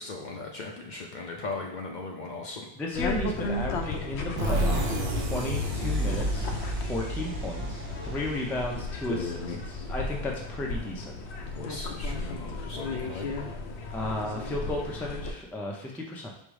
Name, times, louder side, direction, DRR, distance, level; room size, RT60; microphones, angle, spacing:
voice 1, 0.0-2.7 11.5-13.3, left 3 dB, 55° left, 1 dB, 0.6 m, -38 dB
voice 2, 2.8-6.5 6.9-11.2 13.9-16.3, left 2 dB, 5° left, -1 dB, 0.3 m, -34 dB
sound 1, 2.9-15.3, left 3 dB, 80° left, 0.8 m, -34 dB
sound 2, 4.4-9.9, right 1 dB, 65° right, 0.9 m, -31 dB
5.2 x 2.1 x 4.7 m, 0.76 s
omnidirectional pair, 1.1 m